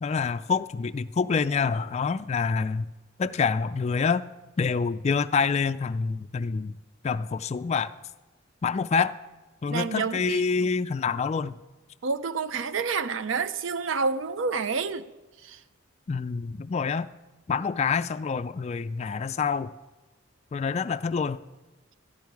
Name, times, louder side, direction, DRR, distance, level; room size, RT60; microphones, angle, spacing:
voice 1, 0.0-2.9 3.2-4.2 4.6-6.8 7.0-7.9 8.6-9.1 9.6-11.6 16.1-17.1 17.5-19.7 20.5-21.4, left 5 dB, 35° left, 0.3 m, -27 dB
voice 2, 9.7-10.4 12.0-15.1 15.4-15.6, right 5 dB, 65° right, 0.5 m, -28 dB
13.5 x 10.0 x 4.6 m
head